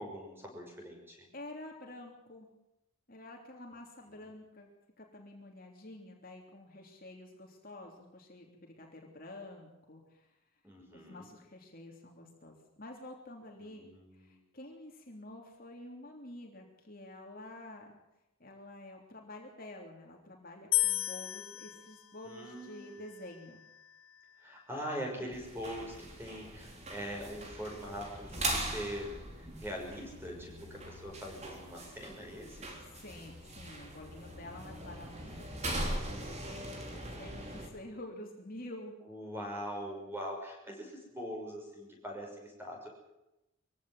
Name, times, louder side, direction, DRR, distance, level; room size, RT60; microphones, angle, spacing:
voice 1, 0.0-1.3 4.1-4.2 10.6-11.3 13.6-14.3 22.2-23.0 24.4-32.7 39.1-42.9, equal, 10° right, 0 dB, 6.1 m, -42 dB
voice 2, 1.3-2.5 3.1-4.7 5.0-10.3 10.9-17.9 18.4-23.6 32.9-38.9, left 1 dB, 40° left, 1 dB, 3.3 m, -49 dB
sound 1, 20.7-23.9, left 17 dB, 65° left, 1.3 m, -35 dB
sound 2, 25.3-37.7, right 1 dB, 30° right, 3.7 m, -41 dB
23.0 x 16.0 x 7.9 m, 0.92 s
head